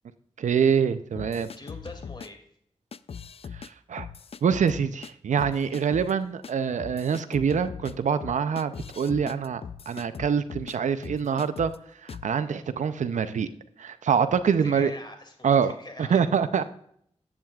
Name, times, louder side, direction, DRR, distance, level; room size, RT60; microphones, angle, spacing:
voice 1, 0.4-1.5 3.9-4.1 4.4-11.7 12.0-13.5 13.8-14.9 15.4-15.7 16.0-16.6, right 7 dB, 85° right, 12 dB, 0.5 m, -25 dB
sound 1, 1.1-2.3 2.9-3.7 4.0-5.1 5.4-6.1 6.4-6.5 6.8-10.8 11.0-11.8 12.1-12.3, left 6 dB, 55° left, 0.4 m, -40 dB
voice 2, 1.4-2.4 14.4-16.2, left 2 dB, 40° left, 5 dB, 2.3 m, -43 dB
10.5 x 8.8 x 2.3 m, 0.66 s
cardioid pair, 55°, 12 cm